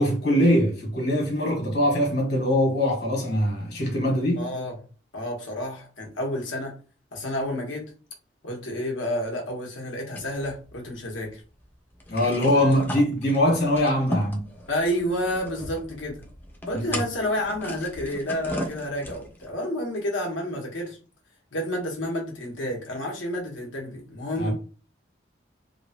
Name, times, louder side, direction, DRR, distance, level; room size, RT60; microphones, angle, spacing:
voice 1, 0.0-4.5 12.1-14.4 16.7-16.9 24.4-24.5, equal, 60° left, 1.2 m, -22 dB
voice 2, 4.4-4.7 5.1-6.8 7.1-7.9 8.4-11.4 14.7-16.2 16.7-21.0 21.5-24.5, left 1 dB, 90° left, 1.0 m, -30 dB
sound 1, 10.1-11.3 11.6-11.7 11.9-19.5, left 1 dB, 10° left, 0.4 m, -36 dB
2.9 x 2.1 x 2.7 m
head